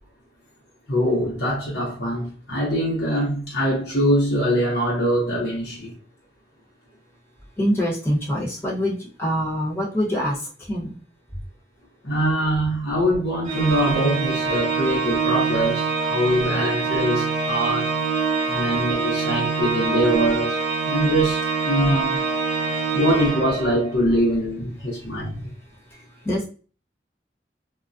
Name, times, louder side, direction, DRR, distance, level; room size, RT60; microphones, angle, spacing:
voice 1, 0.9-5.9 12.0-17.9 18.5-20.6 20.8-22.3 22.9-25.5, equal, 60° left, 0.9 m, -23 dB
voice 2, 7.6-10.9 25.9-26.4, equal, 15° left, 0.9 m, -25 dB
Organ, 13.5-24.1, right 5 dB, 45° right, 0.6 m, -25 dB
2.2 x 2.1 x 2.5 m
head